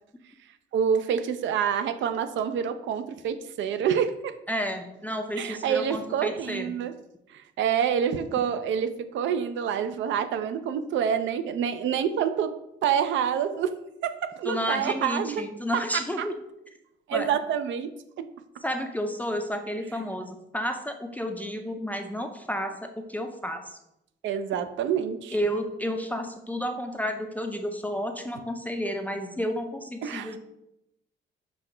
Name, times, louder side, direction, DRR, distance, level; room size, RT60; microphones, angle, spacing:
voice 1, 0.7-4.4 5.4-6.9 7.3-12.5 12.8-13.7 14.0-15.4 16.2-16.3 17.1-17.9 18.2-18.3 24.2-25.3 30.0-30.4, right 8 dB, 70° right, 10 dB, 0.4 m, -27 dB
voice 2, 4.5-6.7 14.4-16.3 17.1-17.3 18.6-23.8 25.3-30.4, equal, 10° left, 5 dB, 0.4 m, -31 dB
6.1 x 2.2 x 3.7 m, 0.85 s
cardioid pair, 90°, 20 cm